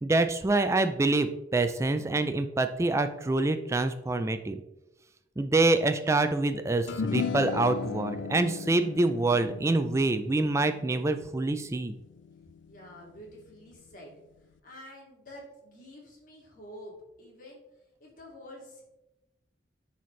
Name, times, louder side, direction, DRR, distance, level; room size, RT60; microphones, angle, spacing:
voice 1, 0.0-4.6 5.4-11.9, right 2 dB, 15° right, 9 dB, 0.3 m, -26 dB
sound 1, 6.9-13.4, left 5 dB, 85° left, 0.4 m, -37 dB
voice 2, 12.7-16.9 17.2-17.6 18.0-18.8, equal, 45° left, -3 dB, 2.2 m, -48 dB
10.0 x 4.2 x 3.1 m, 0.94 s
head